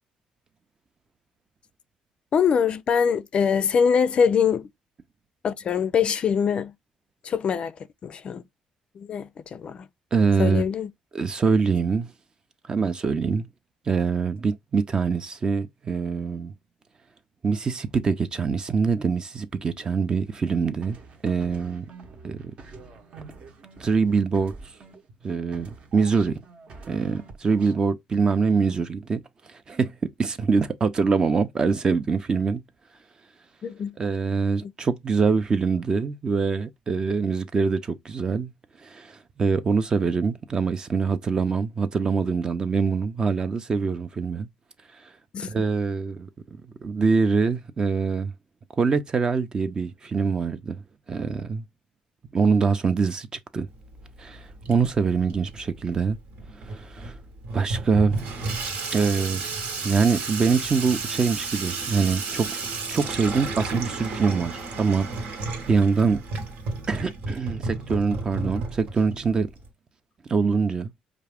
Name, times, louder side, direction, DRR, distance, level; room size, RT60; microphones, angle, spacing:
voice 1, 2.3-4.7 5.4-6.7 7.2-7.7 8.0-8.4 9.0-9.9 10.4-10.9 33.6-33.9 34.6-34.7 45.3-45.5, left 7 dB, 45° left, 0.4 m, -23 dB
voice 2, 10.1-10.6 11.1-12.1 12.7-13.5 13.9-16.5 17.4-21.0 21.2-21.9 22.2-22.5 23.8-24.5 25.2-26.4 26.9-29.2 29.7-32.6 34.0-38.5 38.8-44.5 45.4-46.3 46.8-48.3 48.8-50.8 51.1-51.7 52.3-53.7 54.2-56.2 56.7-57.2 57.5-58.3 58.9-59.4 59.8-62.5 62.9-65.4 65.7-66.2 66.9-69.5 70.3-70.9, right 5 dB, 30° right, 0.6 m, -24 dB
sound 1, 20.8-25.2 25.5-27.9, right 4 dB, 50° right, 1.0 m, -46 dB
Water tap faucet / Sink (filling or washing), 53.7-69.7, right 3 dB, 70° right, 1.2 m, -33 dB
4.5 x 2.5 x 3.5 m
cardioid pair, 105°, 2 cm